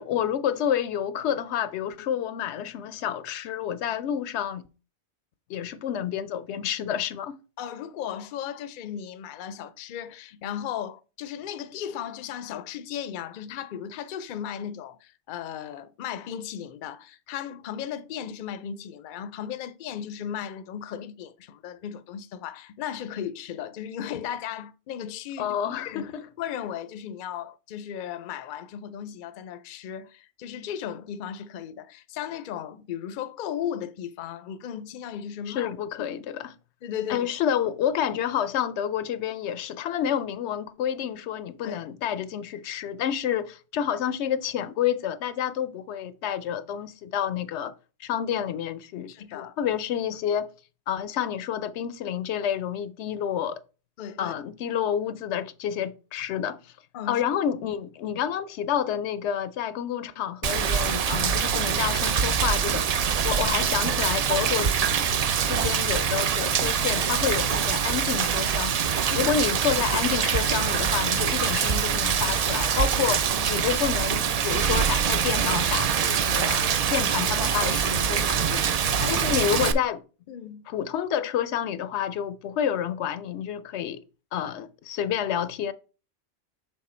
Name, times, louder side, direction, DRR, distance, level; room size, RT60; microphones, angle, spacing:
voice 1, 0.0-4.7 5.5-7.3 25.4-26.2 35.5-36.5 37.1-47.7 48.0-50.5 50.9-53.6 54.2-56.7 57.1-62.9 63.2-64.7 65.5-68.7 69.1-78.6 79.1-80.0 80.7-84.0 84.3-85.7, left 9 dB, 85° left, 0.9 m, -29 dB
voice 2, 7.6-26.1 26.4-35.7 36.8-37.3 41.6-41.9 49.1-49.6 54.0-54.3 56.9-57.2 69.1-69.3 73.4-73.5 79.0-79.4 80.3-80.7, left 9 dB, 60° left, 0.6 m, -36 dB
Rain, 60.4-79.7, right 7 dB, 55° right, 0.4 m, -24 dB
6.6 x 3.5 x 4.3 m
omnidirectional pair, 1.1 m